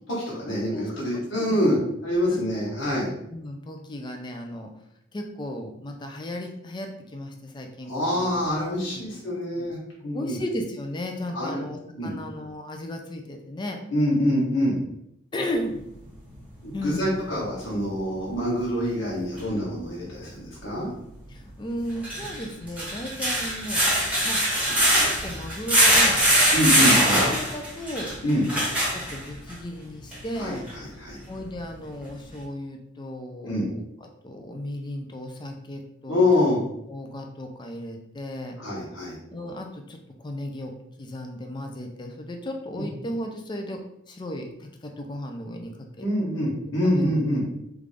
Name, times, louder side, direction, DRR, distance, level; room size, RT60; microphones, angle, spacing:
voice 1, 0.1-3.1 7.8-10.4 11.3-11.6 11.9-12.2 13.9-14.8 16.6-20.9 26.5-27.2 28.2-28.4 30.4-31.2 33.4-33.7 36.1-36.7 38.6-39.2 42.7-42.8 46.0-47.4, left 1 dB, 75° left, -6 dB, 1.2 m, -25 dB
voice 2, 0.7-1.6 2.3-2.4 3.3-4.7 5.1-8.3 8.9-9.2 9.6-9.7 10.1-13.8 15.3-15.9 16.7-17.2 21.3-23.8 24.2-24.4 25.0-28.1 28.5-28.6 28.9-30.7 31.3-36.2 36.9-38.6 39.3-40.0 40.2-40.7 41.0-43.8 44.1-46.0 46.8-47.1, left 1 dB, 25° left, 4 dB, 0.4 m, -35 dB
sound 1, 19.4-19.5 21.9-29.5 30.1-30.2 30.7-30.8, equal, 5° right, 0.9 m, -22 dB
3.4 x 2.5 x 3.3 m, 0.78 s
head